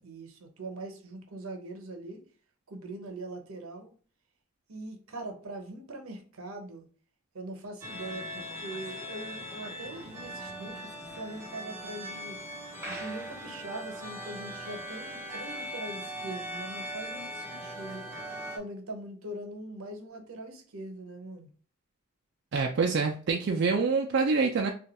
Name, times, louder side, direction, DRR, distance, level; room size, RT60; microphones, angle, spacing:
voice 1, 0.0-2.2 2.7-3.9 4.7-6.8 7.3-12.4 12.9-18.1 18.5-21.5, right 1 dB, 80° right, 4 dB, 0.8 m, -42 dB
sound 1, 7.8-18.6, equal, 10° right, 0.6 m, -40 dB
voice 2, 22.5-24.7, right 4 dB, 55° right, 2 dB, 0.3 m, -26 dB
2.4 x 2.2 x 4.0 m, 0.42 s
head